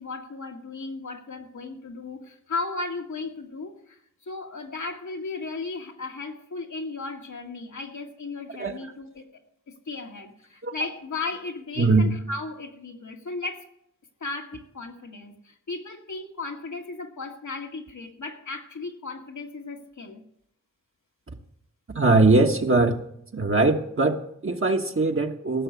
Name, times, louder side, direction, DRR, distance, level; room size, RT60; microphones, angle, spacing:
voice 1, 0.0-9.3 9.7-13.6 14.2-20.2, left 3 dB, 75° left, 2 dB, 2.0 m, -35 dB
voice 2, 11.8-12.1 21.9-23.0 23.3-25.6, right 3 dB, 45° right, 3 dB, 1.3 m, -21 dB
16.0 x 6.4 x 8.3 m, 0.73 s
cardioid pair, 60°, 29 cm